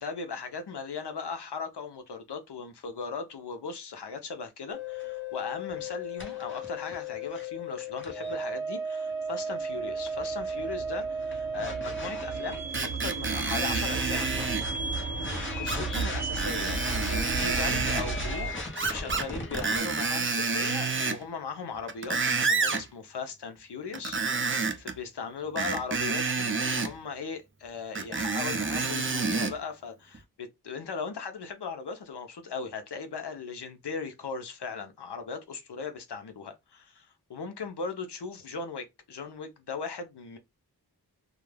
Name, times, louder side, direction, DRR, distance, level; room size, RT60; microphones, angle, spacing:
voice 1, 0.0-12.6 13.0-14.2 14.8-15.1 15.6-18.5 18.9-40.4, left 5 dB, 85° left, 0.6 m, -38 dB
sound 1, 4.7-19.8, right 1 dB, 30° left, 0.9 m, -35 dB
sound 2, 8.8-18.5, right 4 dB, 90° right, 0.6 m, -36 dB
Screech, 12.7-14.7 15.7-16.1 16.4-18.0 18.7-19.3 19.5-21.2 21.7-22.8 23.9-24.9 25.6-26.9 27.9-29.5 30.1-30.2, right 4 dB, 30° right, 0.5 m, -29 dB
2.3 x 2.2 x 3.2 m
wide cardioid pair, 55°, 39 cm